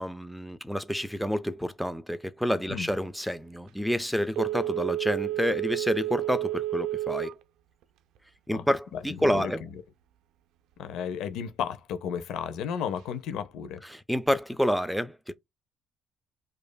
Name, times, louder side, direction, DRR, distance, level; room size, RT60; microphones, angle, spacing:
voice 1, 0.0-7.3 8.5-9.6 13.9-15.3, equal, ahead, 0.3 m, -29 dB
Telephone, 4.3-7.4 7.8-7.9, right 15 dB, 80° right, 0.4 m, -31 dB
voice 2, 8.9-9.8 10.8-13.8, left 8 dB, 75° left, 0.6 m, -34 dB
5.1 x 2.5 x 2.2 m
cardioid pair, 130°, 0 cm